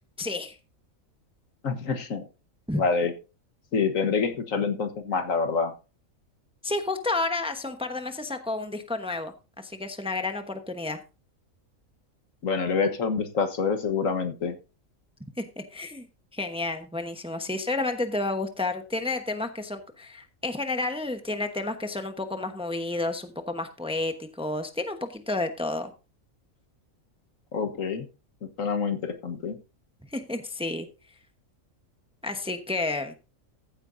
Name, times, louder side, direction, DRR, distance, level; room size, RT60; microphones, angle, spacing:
voice 1, 0.2-0.6 2.7-2.8 6.6-11.0 15.4-16.0 16.3-25.9 30.1-30.9 32.2-33.1, left 2 dB, 5° right, 7 dB, 0.9 m, -31 dB
voice 2, 1.6-2.2 2.7-3.1 3.7-5.7 12.4-14.5 27.5-28.1 28.6-29.6, left 5 dB, 75° left, 8 dB, 1.7 m, -26 dB
15.0 x 8.8 x 2.7 m, 0.31 s
omnidirectional pair, 1.4 m